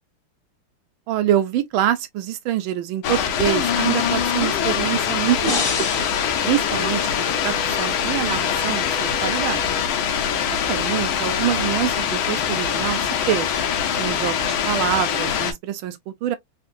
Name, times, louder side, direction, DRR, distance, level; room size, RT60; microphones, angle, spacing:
voice 1, 1.1-5.7 6.0-6.1 6.4-9.7 10.7-13.5 14.0-16.4, right 11 dB, 75° right, 1.4 m, -25 dB
sound 1, 3.0-15.5, left 8 dB, 75° left, 1.6 m, -23 dB
sound 2, 5.4-7.6, left 4 dB, 35° left, 0.8 m, -30 dB
4.2 x 2.8 x 2.5 m
omnidirectional pair, 2.4 m